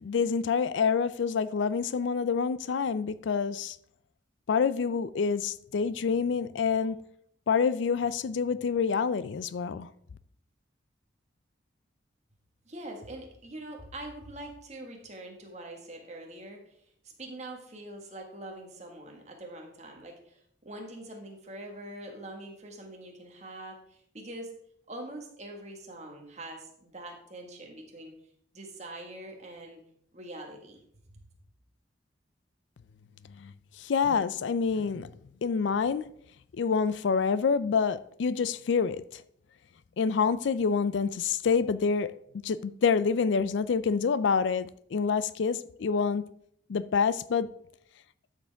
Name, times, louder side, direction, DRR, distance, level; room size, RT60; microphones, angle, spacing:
voice 1, 0.0-3.7 4.5-7.0 7.5-9.9 33.9-35.1 35.4-36.0 36.6-39.0 40.0-42.1 42.4-46.2 46.7-47.5, left 5 dB, 70° left, 0.4 m, -27 dB
voice 2, 12.7-16.6 17.2-24.5 24.9-28.1 28.5-29.8 30.1-30.8, right 1 dB, 35° right, 1.7 m, -43 dB
12.0 x 6.7 x 3.5 m
head